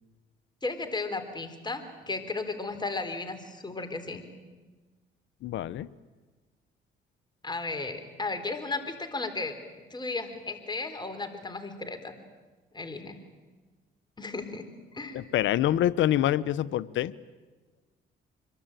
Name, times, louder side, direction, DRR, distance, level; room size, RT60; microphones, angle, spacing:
voice 1, 0.6-4.2 7.4-9.5 9.9-12.2 12.7-13.2 14.2-14.7 14.9-15.2, left 3 dB, 20° left, 7 dB, 4.0 m, -34 dB
voice 2, 5.4-5.9 15.1-17.1, left 12 dB, 70° left, 17 dB, 0.9 m, -26 dB
25.5 x 22.5 x 9.1 m, 1.3 s
supercardioid pair, 75°, 20 cm